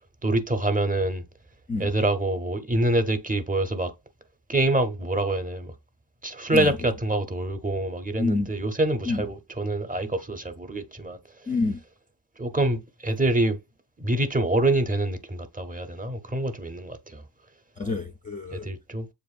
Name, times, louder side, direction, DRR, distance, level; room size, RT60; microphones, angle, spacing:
voice 1, 0.2-1.2 1.8-3.9 4.5-5.7 6.2-11.2 12.4-13.6 14.0-17.2 18.5-19.1, right 1 dB, 20° right, 0.6 m, -26 dB
voice 2, 8.2-8.5 9.1-9.2 11.5-11.8 17.8-18.7, left 3 dB, 20° left, 0.3 m, -28 dB
7.2 x 2.5 x 2.4 m
cardioid pair, 85°, 45 cm